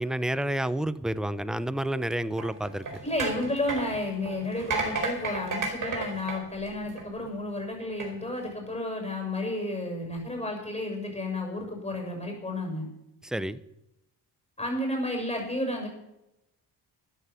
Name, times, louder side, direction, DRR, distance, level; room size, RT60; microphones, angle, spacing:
voice 1, 0.0-2.8 13.2-13.6, right 1 dB, ahead, 15 dB, 0.6 m, -29 dB
sound 1, 2.3-7.3 7.8-8.1, right 3 dB, 45° right, 4.6 m, -33 dB
voice 2, 3.0-12.9 14.6-15.9, left 1 dB, 15° left, 2 dB, 6.6 m, -32 dB
13.5 x 9.8 x 6.9 m, 0.87 s
cardioid pair, 95°, 42 cm